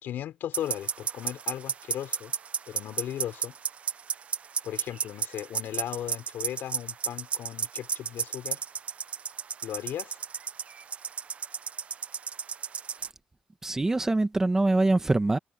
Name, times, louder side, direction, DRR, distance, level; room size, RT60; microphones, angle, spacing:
voice 1, 0.0-2.3 2.7-3.5 4.6-8.6 9.6-10.2, left 11 dB, 80° left, 5.6 m, -36 dB
sound 1, 0.5-13.1, right 7 dB, 40° right, 0.5 m, -33 dB
voice 2, 13.6-15.4, right 2 dB, 15° right, 1.1 m, -24 dB
cardioid pair, 155°, 3 cm